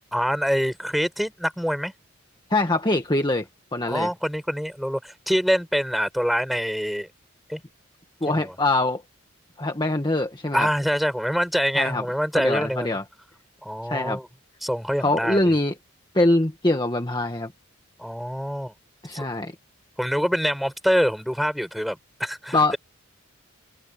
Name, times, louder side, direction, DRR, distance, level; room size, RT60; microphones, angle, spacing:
voice 1, 0.1-1.9 3.9-7.1 7.5-7.6 8.3-8.5 10.5-13.0 13.6-14.3 14.6-15.5 18.0-18.7 19.1-19.3 20.0-22.8, equal, ahead, 5.2 m, -25 dB
voice 2, 2.5-3.5 3.7-4.1 8.2-9.0 9.6-10.7 11.7-12.0 12.3-13.0 13.8-14.2 15.0-15.7 16.1-17.5 19.0-19.5 22.5-22.7, left 2 dB, 20° left, 1.6 m, -23 dB
head